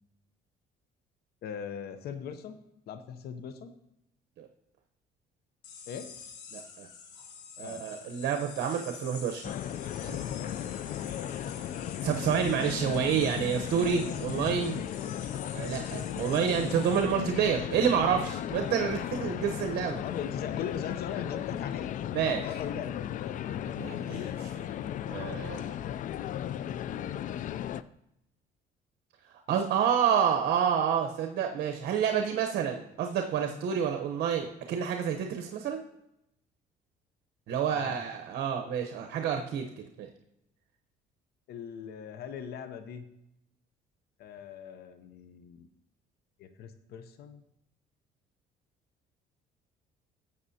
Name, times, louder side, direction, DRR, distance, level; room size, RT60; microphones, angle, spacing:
voice 1, 1.4-2.6 2.9-3.7 5.9-6.1 7.6-7.8 10.5-10.7 16.7-16.8 20.0-21.9 22.4-22.9 23.2-23.4 37.7-38.0 41.5-43.1 44.2-45.7 46.4-47.4, left 8 dB, 70° left, 10 dB, 0.8 m, -40 dB
sound 1, 5.6-17.2, left 6 dB, 85° left, 1.7 m, -47 dB
voice 2, 6.5-6.9 7.6-9.5 10.0-10.2 12.0-14.8 15.5-20.0 22.1-22.4 23.8-24.7 25.1-25.8 29.5-35.8 37.5-39.6 40.0-40.1, right 8 dB, 70° right, 4 dB, 0.9 m, -29 dB
sound 2, 9.4-27.8, left 10 dB, 50° left, 0.4 m, -35 dB
12.5 x 7.8 x 2.8 m, 0.83 s
cardioid pair, 110°, 17 cm